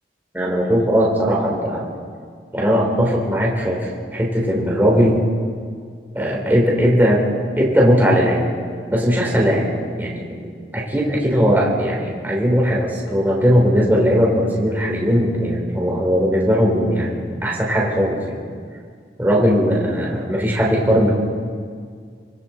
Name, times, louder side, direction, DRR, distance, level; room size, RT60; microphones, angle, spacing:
voice 1, 0.3-1.9 2.5-5.2 6.1-7.3 7.6-8.5 8.9-9.7 10.0-10.4 10.7-18.4 19.2-21.1, equal, 10° right, -3 dB, 4.1 m, -18 dB
26.0 x 25.5 x 4.6 m, 2.1 s
head